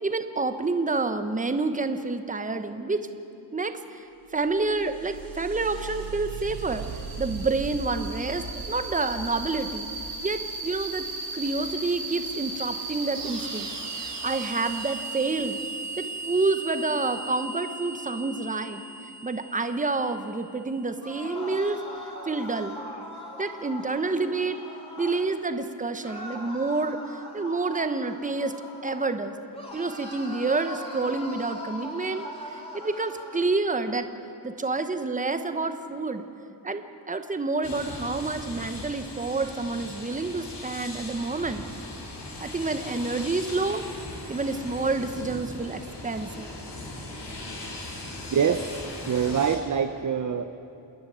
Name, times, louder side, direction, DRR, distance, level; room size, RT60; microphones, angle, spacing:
voice 1, 0.0-3.1 3.5-4.1 4.3-6.8 7.2-9.9 10.2-11.1 11.3-13.7 14.2-15.6 16.0-18.8 19.2-21.8 22.3-22.8 23.4-24.7 25.0-28.5 28.8-29.3 29.7-34.1 34.4-36.2 36.6-41.6 42.4-43.8 44.3-46.5, right 3 dB, 20° right, 8 dB, 1.0 m, -28 dB
sound 1, 4.4-20.7, right 3 dB, 80° right, 4.7 m, -36 dB
sound 2, 20.9-25.3 26.0-29.2 29.5-33.5, equal, 15° left, 3.1 m, -40 dB
sound 3, 37.6-49.6, left 2 dB, 75° left, 4.1 m, -39 dB
voice 2, 48.3-50.4, right 7 dB, 45° right, 8 dB, 0.7 m, -25 dB
28.5 x 10.5 x 9.2 m, 2.7 s
wide cardioid pair, 135°, 42 cm